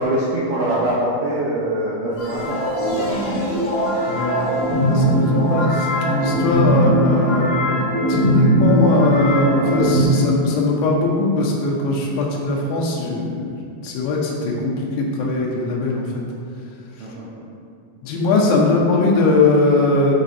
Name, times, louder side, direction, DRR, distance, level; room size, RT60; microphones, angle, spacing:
voice 1, 0.0-3.4 17.0-17.5 18.6-18.8, right 1 dB, 85° right, -7 dB, 2.1 m, -24 dB
sound 1, 2.2-10.0, equal, 60° left, 1.9 m, -19 dB
voice 2, 4.0-7.8 8.1-16.1 18.0-20.1, left 3 dB, 85° left, -2 dB, 3.1 m, -20 dB
7.7 x 4.9 x 2.6 m, 2.4 s
omnidirectional pair, 5.1 m